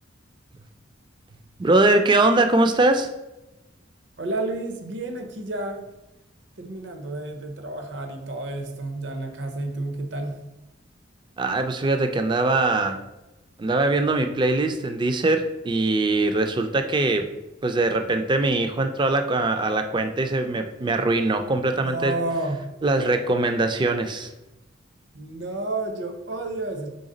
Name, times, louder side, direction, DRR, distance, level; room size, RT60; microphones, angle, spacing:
voice 1, 1.6-3.1 11.4-13.0 13.6-17.3 17.6-22.1 22.8-24.3, right 2 dB, 25° right, 7 dB, 0.3 m, -22 dB
voice 2, 4.2-5.8 6.6-10.4 21.8-22.6 25.1-26.9, right 2 dB, 65° right, 4 dB, 0.7 m, -30 dB
3.9 x 3.5 x 3.9 m, 0.98 s
head